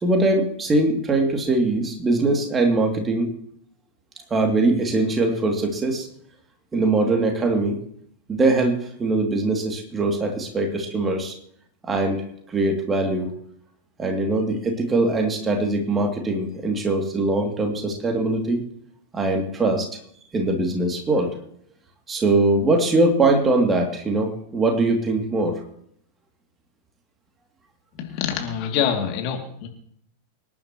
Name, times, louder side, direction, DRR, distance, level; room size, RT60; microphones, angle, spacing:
voice 1, 0.0-3.3 4.3-6.1 6.7-7.8 8.3-11.3 11.8-12.2 12.5-13.3 14.0-18.6 19.1-19.9 20.3-21.3 22.1-25.5, right 2 dB, 20° right, 2 dB, 2.6 m, -22 dB
voice 2, 28.0-29.7, left 8 dB, 40° left, 3 dB, 2.6 m, -25 dB
25.5 x 11.0 x 3.1 m, 0.67 s
figure-of-eight pair, 90°, 0 cm